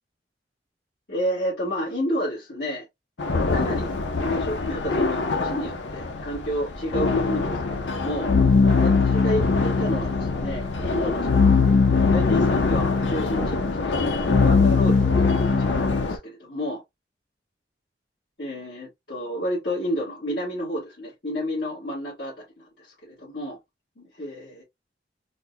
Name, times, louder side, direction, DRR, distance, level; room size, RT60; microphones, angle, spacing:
voice 1, 1.1-2.9 3.5-4.0 4.2-8.3 8.8-11.6 12.1-16.8 18.4-23.6 24.0-24.6, equal, 65° left, 1.9 m, -31 dB
sound 1, 3.2-16.2, left 3 dB, 85° left, 0.7 m, -27 dB
sound 2, 6.9-16.1, left 5 dB, 50° left, 0.3 m, -22 dB
4.2 x 2.2 x 2.7 m
head